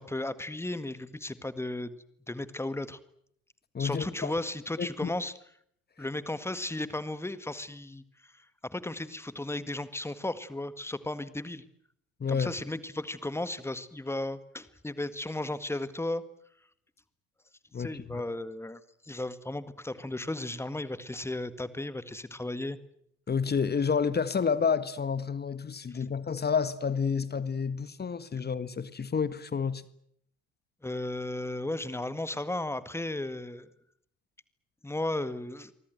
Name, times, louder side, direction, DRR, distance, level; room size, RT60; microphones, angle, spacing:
voice 1, 0.0-1.9 2.3-3.0 3.8-5.3 6.0-8.5 8.7-11.6 12.3-16.2 17.8-22.8 30.8-33.7 34.8-35.7, left 2 dB, 5° left, 14 dB, 1.9 m, -35 dB
voice 2, 3.7-4.3 4.8-5.1 12.2-12.5 17.7-18.2 23.3-29.8, left 6 dB, 25° left, 15 dB, 1.6 m, -29 dB
28.0 x 24.0 x 7.9 m, 0.71 s
figure-of-eight pair, 60°, 42 cm